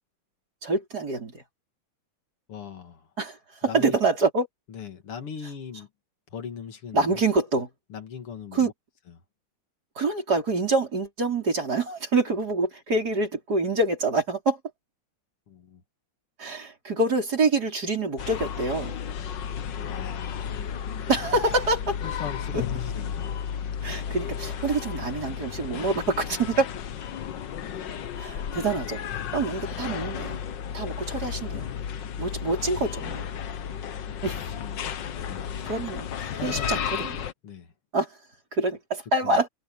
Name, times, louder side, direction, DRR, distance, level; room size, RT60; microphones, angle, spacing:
voice 1, 0.6-1.4 3.2-4.5 6.9-7.7 8.5-8.7 9.9-14.6 16.4-19.0 21.1-22.0 22.5-22.6 23.8-26.7 28.2-29.0 29.3-30.4 30.7-31.7 32.2-33.2 34.2-34.5 35.6-37.3 37.9-38.2 38.5-39.5, right 3 dB, 45° right, 5.2 m, -26 dB
voice 2, 2.5-3.1 3.7-4.0 4.7-5.9 6.3-7.2 7.9-8.7 15.5-15.8 19.9-20.5 22.0-23.2 34.5-34.9 35.2-35.6 36.3-37.1 37.4-37.7 39.2-39.4, left 7 dB, 90° left, 2.9 m, -39 dB
sound 1, 18.2-37.3, left 8 dB, 60° left, 1.6 m, -33 dB
omnidirectional pair, 2.4 m